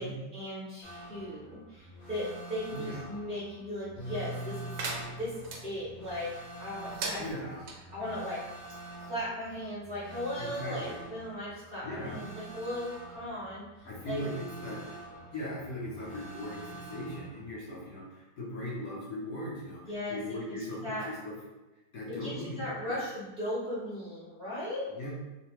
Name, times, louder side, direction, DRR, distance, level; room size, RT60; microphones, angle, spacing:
voice 1, 0.0-4.7 5.2-7.2 7.9-8.4 9.0-14.2 19.9-20.2 20.7-21.1 22.1-25.1, left 1 dB, 45° right, -10 dB, 0.8 m, -37 dB
sound 1, 0.8-17.5, right 2 dB, 40° left, 0.8 m, -47 dB
voice 2, 2.7-3.1 7.2-7.6 10.4-11.0 11.8-12.2 13.8-14.9 15.3-21.4 21.9-22.8 24.9-25.1, left 1 dB, 60° left, -6 dB, 1.2 m, -39 dB
Piano, 4.0-8.4, equal, 90° left, 1.2 m, -45 dB
sound 2, 4.8-5.6 6.8-7.8, right 3 dB, 75° right, 1.1 m, -38 dB
3.2 x 2.2 x 2.9 m, 1.1 s
omnidirectional pair, 1.8 m